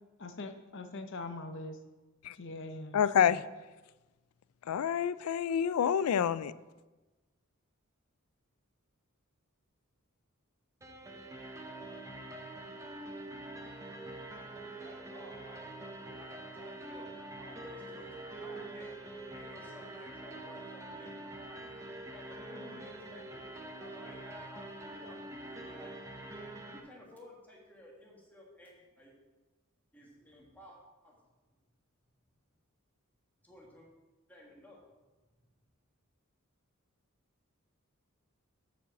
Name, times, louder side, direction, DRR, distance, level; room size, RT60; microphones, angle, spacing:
voice 1, 0.2-1.8 2.3-3.0 3.3-3.4, left 2 dB, 60° left, 0.7 m, -42 dB
voice 2, 2.9-3.4 4.7-6.5, left 8 dB, 90° left, 0.3 m, -27 dB
sound 1, 10.8-26.8, right 2 dB, 15° right, 0.8 m, -45 dB
voice 3, 14.8-17.1 17.4-18.9 19.3-21.6 22.1-23.4 23.8-25.9 26.7-29.1 29.9-30.8 31.0-31.2 33.4-33.9 34.3-34.8, left 1 dB, 10° left, 1.6 m, -54 dB
7.1 x 5.2 x 6.9 m
head